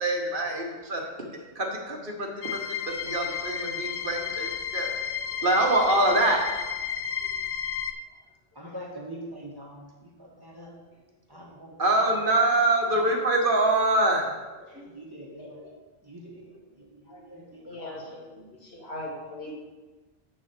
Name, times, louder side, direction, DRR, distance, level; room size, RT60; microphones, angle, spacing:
voice 1, 0.0-1.1 1.5-2.6 3.0-4.9 5.4-6.4 11.8-14.3, right 2 dB, 55° right, 0 dB, 1.3 m, -24 dB
sound 1, 2.4-7.9, left 8 dB, 55° left, 0.4 m, -32 dB
voice 2, 8.5-10.8 11.3-11.8 12.9-13.2 14.9-15.8 16.0-17.9, equal, 20° right, -2 dB, 1.1 m, -44 dB
voice 3, 17.1-19.5, left 1 dB, 70° left, -4 dB, 2.2 m, -40 dB
7.9 x 4.3 x 6.6 m, 1.2 s
omnidirectional pair, 1.1 m